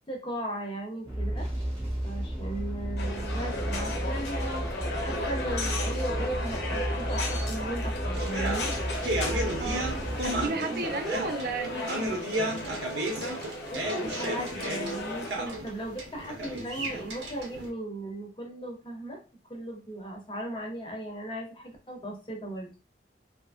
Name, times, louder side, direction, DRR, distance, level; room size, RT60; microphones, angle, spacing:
voice 1, 0.1-1.5 2.0-4.7 5.0-8.7 10.7-10.8 13.7-19.2 19.5-22.7, right 1 dB, 25° left, 0.6 m, -37 dB
sound 1, 1.0-10.5, right 1 dB, 20° right, 0.9 m, -33 dB
sound 2, 3.0-15.3, left 1 dB, 80° left, 0.7 m, -35 dB
sound 3, 8.1-17.7, right 1 dB, 90° right, 0.8 m, -34 dB
voice 2, 10.2-12.1, right 3 dB, 55° right, 0.4 m, -33 dB
2.7 x 2.5 x 2.4 m
head